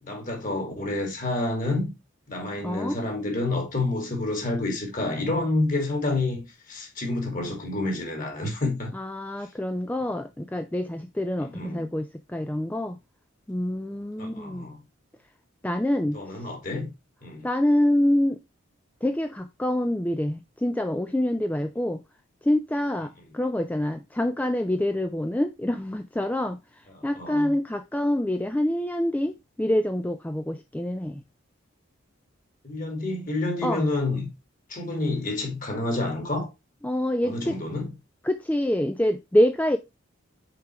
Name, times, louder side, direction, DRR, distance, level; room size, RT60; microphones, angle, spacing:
voice 1, 0.0-1.9 2.3-8.9 11.4-11.9 14.2-14.8 16.1-16.9 17.2-17.5 26.9-27.5 32.6-34.3 34.7-36.5 37.2-37.9, left 2 dB, 40° left, 2.6 m, -29 dB
voice 2, 2.6-3.0 8.9-13.0 13.5-14.7 15.6-16.2 17.4-18.4 19.0-22.0 22.4-31.2 33.6-33.9 36.8-37.5 38.2-39.8, left 1 dB, 10° left, 0.3 m, -26 dB
5.9 x 4.9 x 4.4 m
head